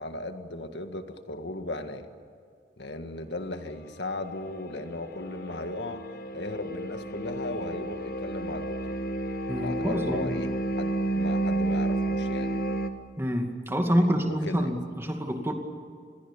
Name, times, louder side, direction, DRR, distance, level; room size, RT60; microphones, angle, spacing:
voice 1, 0.0-2.1 2.8-9.0 9.6-12.8 14.2-14.8, left 2 dB, 85° left, 7 dB, 1.9 m, -37 dB
sound 1, 4.4-12.9, right 2 dB, 55° left, 1.5 m, -31 dB
voice 2, 9.5-10.3 13.2-15.5, equal, 15° right, 3 dB, 2.3 m, -27 dB
27.5 x 21.5 x 7.1 m, 2.3 s
head